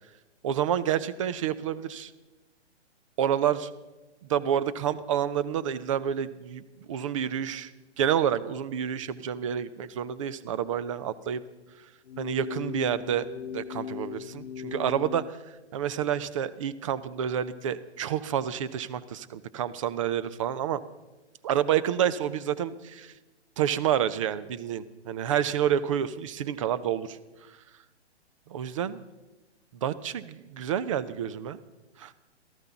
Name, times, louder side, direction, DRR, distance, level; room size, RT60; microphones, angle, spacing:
voice 1, 0.4-2.1 3.2-3.7 4.3-6.6 6.9-7.7 8.0-11.4 12.2-13.3 13.5-15.2 15.7-20.8 21.4-23.1 23.6-27.2 28.5-29.0 29.8-31.6 32.0-32.1, right 9 dB, 30° right, 15 dB, 0.7 m, -28 dB
sound 1, 12.0-15.3, left 8 dB, 65° left, 0.5 m, -38 dB
18.0 x 14.0 x 5.8 m, 1.1 s
figure-of-eight pair, 125°, 35 cm